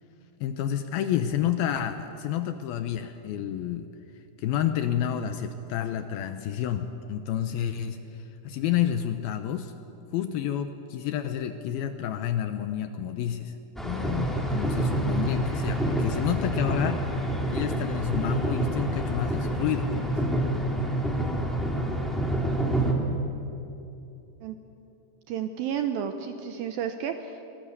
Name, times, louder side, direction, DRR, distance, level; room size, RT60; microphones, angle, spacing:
voice 1, 0.4-3.9 4.4-8.0 8.4-9.7 10.1-13.5 13.8-20.2, left 10 dB, 80° left, 8 dB, 2.3 m, -29 dB
sound 1, 13.8-22.9, right 1 dB, ahead, 1.2 m, -27 dB
voice 2, 25.3-27.4, right 8 dB, 80° right, 7 dB, 2.2 m, -31 dB
23.5 x 19.0 x 8.1 m, 2.8 s
omnidirectional pair, 4.9 m